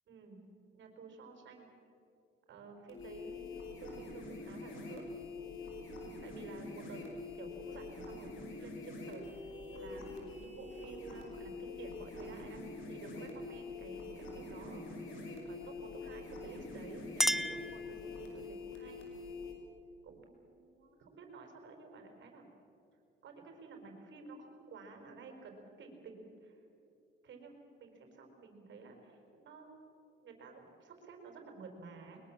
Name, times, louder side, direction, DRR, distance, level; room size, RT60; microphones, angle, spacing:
voice 1, 0.1-0.5 0.7-1.7 2.5-5.0 6.2-7.0 7.3-19.0 20.0-22.5 23.2-26.6 27.2-29.8 30.2-32.2, right 4 dB, 70° right, 3 dB, 4.8 m, -52 dB
sound 1, 2.9-19.5, left 3 dB, 80° left, 5.5 m, -45 dB
Chink clink, 16.6-18.5, equal, ahead, 0.6 m, -35 dB
22.5 x 21.5 x 7.3 m, 2.6 s
cardioid pair, 90°, 20 cm